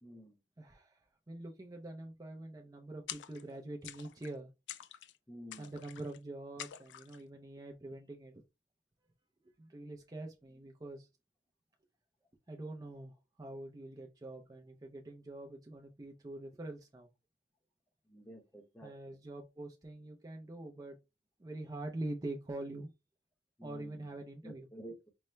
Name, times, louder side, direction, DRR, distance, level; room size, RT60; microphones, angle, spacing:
voice 1, 0.0-0.4 5.3-5.8 18.1-19.2 23.6-24.2 24.4-25.1, right 1 dB, 10° left, 0.8 m, -51 dB
voice 2, 0.6-4.5 5.6-8.4 9.6-11.1 12.5-17.1 18.8-21.0 21.4-22.9 23.6-24.7, right 2 dB, 20° right, 0.4 m, -45 dB
sound 1, 3.1-3.6 3.8-4.3 4.7-5.2 5.5-6.2 6.6-7.2, left 11 dB, 85° left, 0.3 m, -47 dB
5.5 x 2.1 x 3.1 m
head